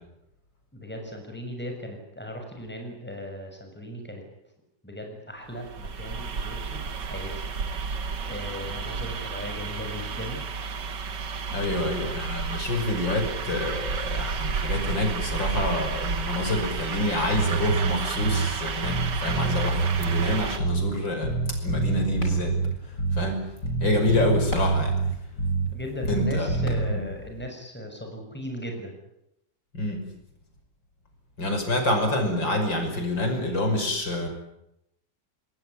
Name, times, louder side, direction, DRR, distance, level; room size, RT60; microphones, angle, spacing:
voice 1, 0.7-4.2 4.8-7.4 8.2-10.4 11.5-12.1 25.7-28.9, equal, 5° left, 3 dB, 6.8 m, -37 dB
sound 1, 5.5-20.6, right 5 dB, 70° right, 2.3 m, -32 dB
voice 2, 11.5-21.3 21.6-22.6 23.1-23.5 23.8-24.9 26.1-26.5 26.9-27.0 29.7-30.1 31.4-34.3, left 1 dB, 90° left, 4 dB, 6.4 m, -27 dB
Bass guitar, 17.3-18.6 18.8-21.0 21.2-23.4 23.6-25.8 26.0-26.9, right 3 dB, 65° left, 4.5 m, -26 dB
sound 2, 21.6-27.5, left 1 dB, 45° left, 6.0 m, -42 dB
27.5 x 19.5 x 10.0 m, 0.83 s
omnidirectional pair, 2.0 m